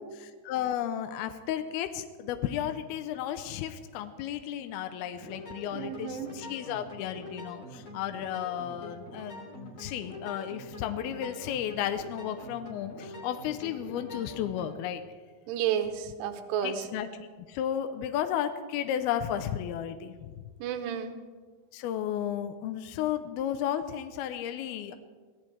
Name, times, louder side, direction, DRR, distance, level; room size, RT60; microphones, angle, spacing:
voice 1, 0.0-15.0 16.6-20.3 21.7-25.0, left 10 dB, 85° left, 9 dB, 2.3 m, -33 dB
sound 1, 5.1-14.7, left 1 dB, 50° left, 4.7 m, -45 dB
voice 2, 5.7-6.3 15.5-16.9 20.6-21.2, right 9 dB, 75° right, 7 dB, 3.1 m, -31 dB
25.0 x 16.5 x 3.3 m, 1.5 s
omnidirectional pair, 5.2 m